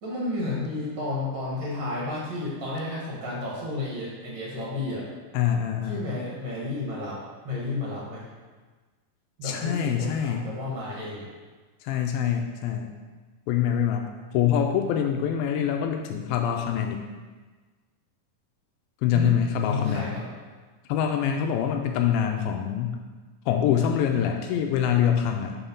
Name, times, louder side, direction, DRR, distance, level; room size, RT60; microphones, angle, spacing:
voice 1, 0.0-5.0 5.8-7.2 7.4-8.2 9.4-11.3 19.1-19.3 19.6-20.2, left 2 dB, 45° right, -6 dB, 1.6 m, -31 dB
voice 2, 5.3-6.1 9.4-10.4 11.8-12.9 13.5-14.0 14.3-17.0 19.0-20.1 20.9-23.0 23.5-25.6, left 9 dB, 85° left, 3 dB, 2.3 m, -25 dB
7.2 x 3.6 x 5.4 m, 1.4 s
omnidirectional pair, 4.2 m